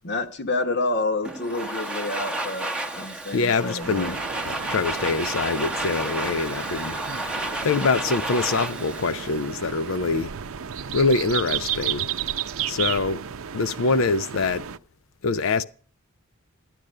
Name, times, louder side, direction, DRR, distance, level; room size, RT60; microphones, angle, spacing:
voice 1, 0.0-2.7 2.9-4.2, left 2 dB, 55° left, 1.3 m, -28 dB
Domestic sounds home sounds, 1.2-10.2, right 1 dB, 5° right, 0.8 m, -32 dB
voice 2, 3.3-4.2 4.5-7.0 7.6-10.4 10.9-12.1 12.7-13.2 13.5-14.7 15.2-15.6, left 4 dB, 70° left, 0.5 m, -24 dB
sound 1, 3.8-14.8, right 9 dB, 80° right, 0.6 m, -33 dB
12.0 x 10.0 x 6.5 m
head